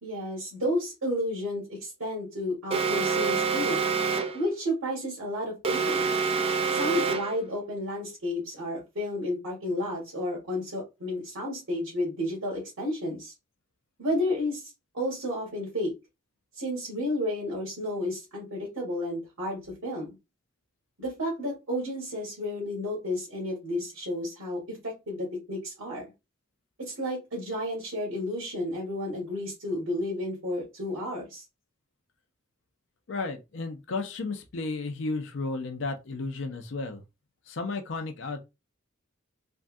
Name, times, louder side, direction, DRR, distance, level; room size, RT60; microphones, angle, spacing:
voice 1, 0.0-3.8 4.3-6.1 6.7-13.3 14.0-15.9 16.5-20.1 21.0-26.0 26.8-31.4, left 1 dB, 85° right, 1.6 m, -32 dB
Alarm, 2.7-4.5 5.6-7.4, right 5 dB, 25° right, 0.3 m, -26 dB
voice 2, 33.1-37.0 37.5-38.4, left 3 dB, 60° left, 0.5 m, -33 dB
3.4 x 2.2 x 2.6 m
head